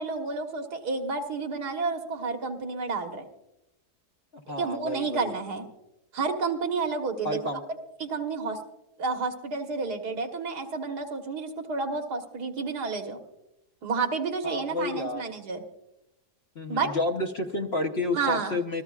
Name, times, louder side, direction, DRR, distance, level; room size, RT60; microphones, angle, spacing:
voice 1, 0.0-3.3 4.6-5.7 6.1-7.4 8.0-8.6 9.0-13.2 13.8-15.6 16.7-16.9 18.1-18.6, right 4 dB, 70° right, 4 dB, 1.9 m, -30 dB
voice 2, 4.5-5.3 7.2-7.6 14.4-15.2 16.5-18.8, left 2 dB, 45° left, 3 dB, 1.1 m, -30 dB
27.0 x 14.5 x 2.4 m, 0.88 s
omnidirectional pair, 1.8 m